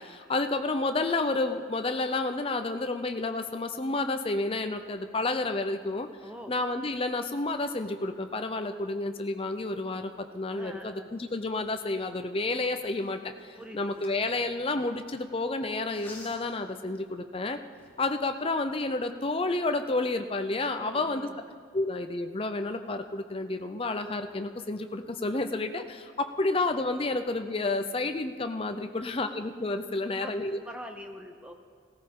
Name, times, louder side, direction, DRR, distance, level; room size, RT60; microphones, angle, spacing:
voice 1, 0.0-6.1 6.5-17.6 18.0-21.3 21.7-30.6, left 2 dB, 25° left, 7 dB, 0.5 m, -30 dB
voice 2, 6.2-6.6 10.5-11.1 13.5-14.2 20.8-21.4 30.2-31.5, equal, 5° right, 4 dB, 0.8 m, -44 dB
sound 1, 11.2-15.1 15.8-16.6 17.2-17.3 17.7-18.2, left 2 dB, 10° left, 1.4 m, -53 dB
16.5 x 14.0 x 3.7 m, 2.1 s
head